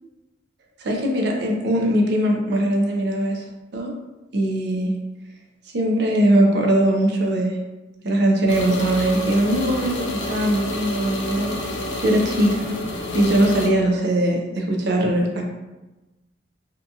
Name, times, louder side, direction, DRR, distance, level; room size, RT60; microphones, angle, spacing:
voice 1, 0.8-3.4 3.7-3.9 4.3-4.9 5.7-7.6 8.0-11.5 12.0-12.7 13.1-15.4, right 1 dB, 60° right, 0 dB, 0.5 m, -20 dB
sound 1, 8.5-13.7, left 1 dB, 75° left, 0.5 m, -29 dB
2.7 x 2.3 x 2.6 m, 1.1 s
head